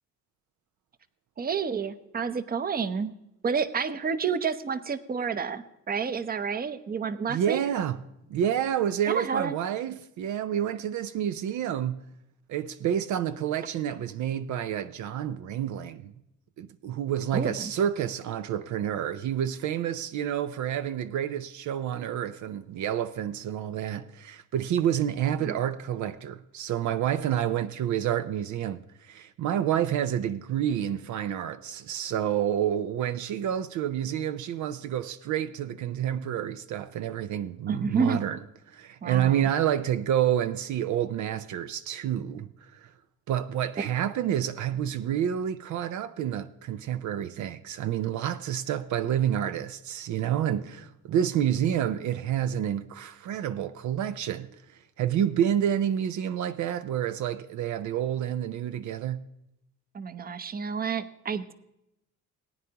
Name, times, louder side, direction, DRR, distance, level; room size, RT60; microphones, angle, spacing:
voice 1, 1.4-3.1 3.4-7.6 9.1-9.7 17.3-17.7 25.5-25.6 37.7-38.2 39.0-39.5 59.9-61.5, right 6 dB, 30° right, 0.7 m, -29 dB
voice 2, 7.3-8.0 8.3-12.0 12.5-16.1 16.6-38.4 38.7-42.9 43.3-54.5 55.0-59.2, right 10 dB, 75° right, 0.6 m, -29 dB
18.5 x 9.4 x 2.9 m
cardioid pair, 90°, 30 cm